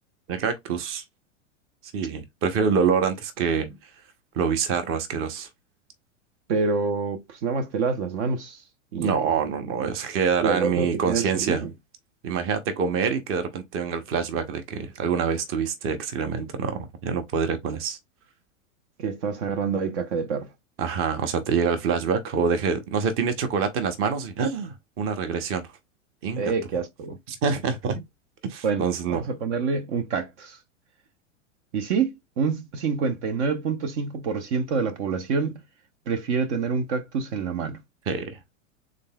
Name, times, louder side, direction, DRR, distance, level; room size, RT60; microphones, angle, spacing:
voice 1, 0.3-1.0 1.9-3.8 4.3-5.5 9.0-11.6 12.2-18.0 20.8-25.7 26.2-26.5 27.3-28.0 28.4-29.2 38.1-38.3, right 6 dB, 35° right, 0.9 m, -26 dB
voice 2, 6.5-8.6 8.9-9.2 10.4-11.7 19.0-20.5 26.4-27.2 28.6-30.6 31.7-35.6 36.1-37.8, right 5 dB, 60° right, 0.9 m, -27 dB
3.8 x 3.7 x 2.3 m
hypercardioid pair, 125°, 38 cm